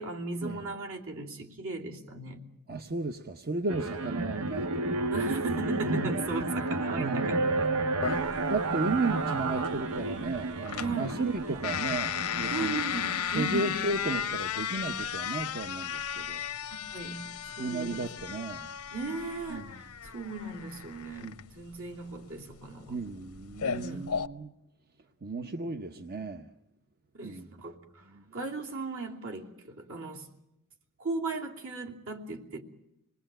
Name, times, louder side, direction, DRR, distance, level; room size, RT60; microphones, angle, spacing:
voice 1, 0.0-2.4 5.1-7.7 8.0-8.5 10.8-11.2 12.5-13.7 16.9-18.0 18.9-23.0 23.6-24.1 27.1-28.0 28.3-30.3 31.0-32.6, right 3 dB, 65° right, 3.1 m, -37 dB
voice 2, 2.7-4.8 5.9-6.1 7.0-7.6 8.5-12.8 13.3-16.4 17.6-18.7 19.5-19.8 21.2-21.4 22.9-24.5 25.2-26.5 27.2-27.5 28.1-28.2, right 3 dB, 45° right, 1.0 m, -34 dB
sound 1, 3.7-14.1, right 2 dB, 85° right, 1.1 m, -32 dB
sound 2, 8.0-24.3, left 8 dB, 85° left, 0.9 m, -35 dB
27.0 x 20.0 x 8.9 m
head